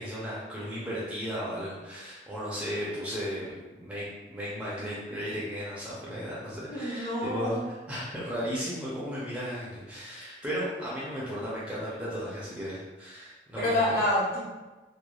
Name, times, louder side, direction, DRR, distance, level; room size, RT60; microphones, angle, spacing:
voice 1, 0.0-13.8, equal, 10° right, -8 dB, 0.5 m, -35 dB
voice 2, 6.7-7.6 13.6-14.4, left 1 dB, 55° left, -10 dB, 1.3 m, -27 dB
3.0 x 2.2 x 2.3 m, 1.2 s
head